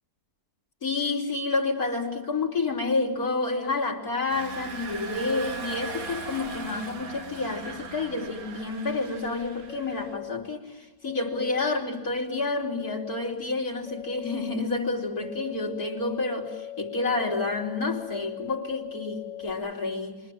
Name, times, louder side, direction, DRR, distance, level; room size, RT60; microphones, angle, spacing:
voice 1, 0.8-20.2, left 3 dB, 70° left, 3.8 m, -29 dB
Engine, 4.3-10.2, right 4 dB, 65° right, 2.2 m, -39 dB
sound 1, 9.7-10.4 11.0-11.8 12.6-13.2 13.8-14.6 15.2-19.5, left 12 dB, 50° left, 2.8 m, -40 dB
29.5 x 25.0 x 7.7 m
omnidirectional pair, 1.6 m